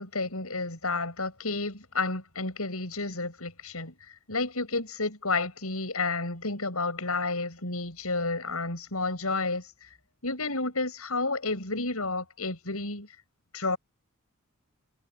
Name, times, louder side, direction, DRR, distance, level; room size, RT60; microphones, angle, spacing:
voice 1, 0.0-9.6 10.2-13.1 13.5-13.8, left 3 dB, 80° left, 7.6 m, -31 dB
head